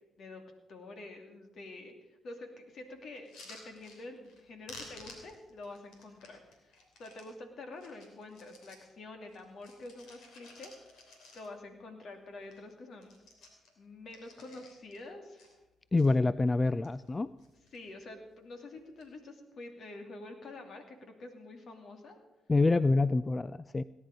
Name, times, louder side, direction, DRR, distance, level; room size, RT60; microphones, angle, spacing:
voice 1, 0.7-10.9 11.3-13.1 13.8-15.5 17.7-22.2, left 2 dB, 65° left, 4 dB, 2.5 m, -47 dB
sound 1, 3.2-4.4 4.7-7.3 7.7-8.9 9.3-11.7 12.1-12.2 12.4-12.7 13.0-15.0 15.4-16.1 16.6-17.1 17.4-17.9 18.8-19.1, left 2 dB, 80° left, 3.1 m, -54 dB
voice 2, 15.9-17.3 22.5-23.8, left 3 dB, 30° left, 16 dB, 0.4 m, -26 dB
17.5 x 10.0 x 5.2 m, 1.0 s
supercardioid pair, 60°, 0 cm